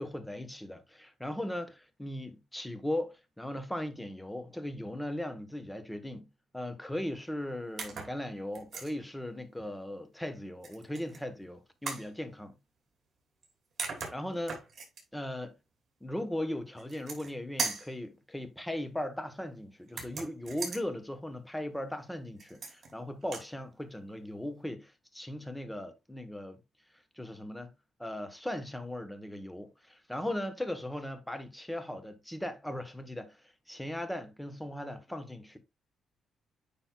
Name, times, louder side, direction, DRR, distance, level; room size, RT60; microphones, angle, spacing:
voice 1, 0.0-6.3 6.5-12.6 14.1-14.6 15.1-15.5 16.0-26.6 27.2-27.7 28.0-33.4 33.7-35.6, left 1 dB, 5° left, 1.2 m, -38 dB
sound 1, 7.8-8.2 8.5-8.9 10.6-11.2 11.9-12.1 13.4-13.5 13.8-15.0 16.8-17.3 17.6-17.9 19.9-20.8 22.4-22.9 23.2-23.5, right 4 dB, 50° right, 2.9 m, -38 dB
9.0 x 5.4 x 2.4 m
cardioid pair, 90°, 0 cm